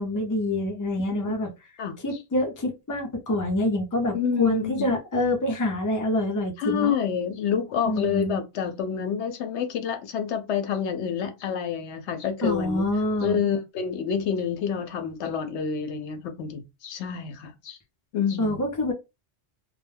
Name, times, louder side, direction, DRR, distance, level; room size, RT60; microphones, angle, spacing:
voice 1, 0.0-1.5 2.0-6.9 7.8-8.4 12.4-13.4 18.4-18.9, left 1 dB, 20° left, 0.5 m, -26 dB
voice 2, 4.1-4.9 6.6-12.8 13.2-17.8 18.1-18.6, left 7 dB, 90° left, 0.9 m, -28 dB
2.2 x 2.1 x 3.2 m
omnidirectional pair, 1.1 m